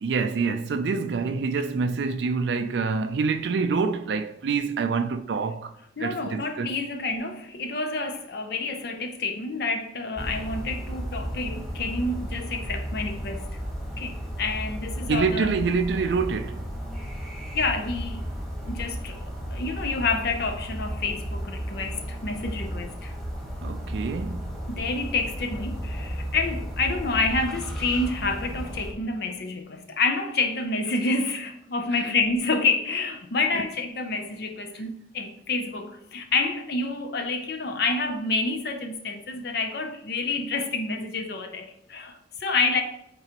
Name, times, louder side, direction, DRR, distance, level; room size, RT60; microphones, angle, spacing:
voice 1, 0.0-5.7 6.0-6.7 15.1-16.6 23.6-24.5 31.9-32.1, right 5 dB, 65° right, 0.4 m, -26 dB
voice 2, 6.0-13.4 14.0-15.5 17.5-18.3 18.6-23.1 24.7-42.8, left 3 dB, 55° left, 0.6 m, -28 dB
sound 1, 10.2-28.9, equal, ahead, 1.4 m, -34 dB
8.9 x 3.8 x 2.9 m
head